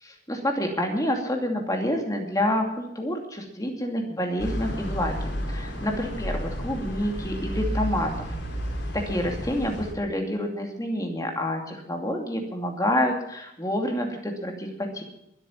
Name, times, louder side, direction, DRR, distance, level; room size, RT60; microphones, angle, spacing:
voice 1, 0.0-8.3 8.9-15.0, left 1 dB, 20° left, 2 dB, 2.6 m, -28 dB
sound 1, 4.4-9.9, equal, 60° left, 4.0 m, -31 dB
22.0 x 9.0 x 5.8 m, 0.81 s
head